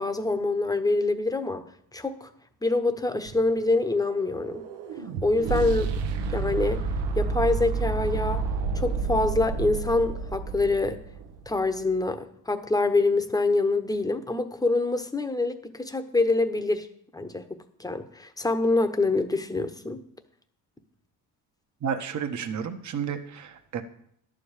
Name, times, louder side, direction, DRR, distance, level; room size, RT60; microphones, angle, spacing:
voice 1, 0.0-1.6 1.9-2.3 2.6-4.6 5.2-5.9 6.3-6.8 7.2-8.4 8.7-11.0 11.5-16.9 17.1-20.0, left 2 dB, 10° left, 9 dB, 1.0 m, -25 dB
sound 1, 3.3-11.4, right 4 dB, 85° right, 1.0 m, -30 dB
voice 2, 21.8-23.8, right 7 dB, 40° right, 5 dB, 1.1 m, -31 dB
11.0 x 5.1 x 7.3 m, 0.67 s
cardioid pair, 85°, 42 cm